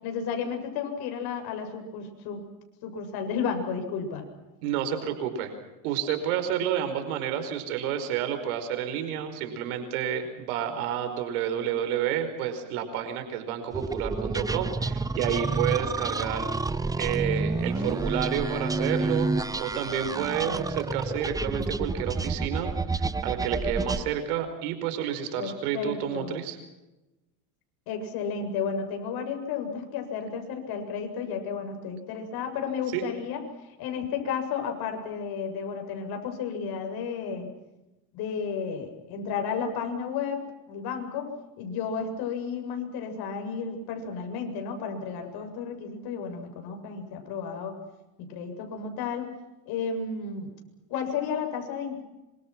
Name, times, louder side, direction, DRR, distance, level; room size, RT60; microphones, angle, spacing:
voice 1, 0.0-2.4 2.8-4.3 17.8-17.9 25.4-26.3 27.9-33.4 33.8-37.5 38.1-41.3 41.6-47.8 48.2-49.3 49.7-50.5 50.9-52.0, left 6 dB, 60° left, 5 dB, 7.6 m, -32 dB
voice 2, 4.6-5.5 5.8-16.5 17.0-26.6 32.9-33.0, right 9 dB, 80° right, 7 dB, 5.1 m, -30 dB
sound 1, 13.7-24.0, right 3 dB, 10° right, 0.8 m, -29 dB
26.5 x 25.5 x 6.1 m, 1.0 s
supercardioid pair, 120°, 43 cm